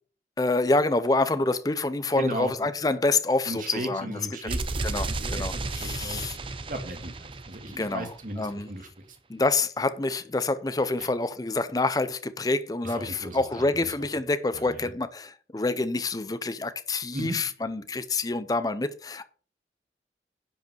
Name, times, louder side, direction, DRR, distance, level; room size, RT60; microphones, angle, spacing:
voice 1, 0.4-4.5 4.8-6.4 7.7-8.1 8.4-8.7 9.3-19.2, left 2 dB, 20° left, 0.5 m, -27 dB
voice 2, 2.1-2.7 3.5-6.3 6.7-8.9 11.0-11.1 12.8-13.9 14.5-14.9 17.1-17.4, right 1 dB, 50° right, 1.9 m, -36 dB
sound 1, 4.5-8.3, right 3 dB, 30° right, 0.6 m, -33 dB
10.5 x 5.3 x 6.2 m
head